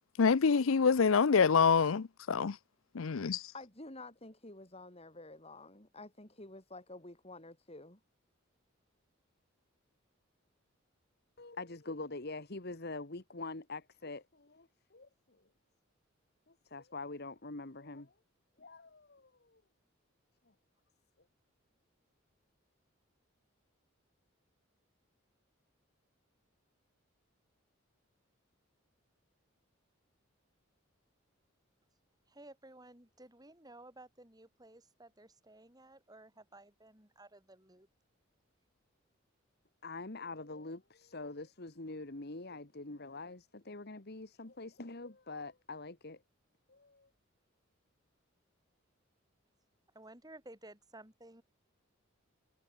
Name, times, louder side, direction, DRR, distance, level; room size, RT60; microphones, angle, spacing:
voice 1, 0.2-2.5 2.9-3.4, left 5 dB, 80° left, 0.6 m, -26 dB
voice 2, 3.5-8.0, left 2 dB, 30° left, 5.7 m, -50 dB
voice 3, 11.4-15.1 16.6-18.1 18.6-19.6 39.8-46.2 46.7-47.1, left 3 dB, 50° left, 1.7 m, -45 dB
voice 4, 32.3-37.9 49.9-51.4, right 2 dB, 20° right, 7.7 m, -55 dB
head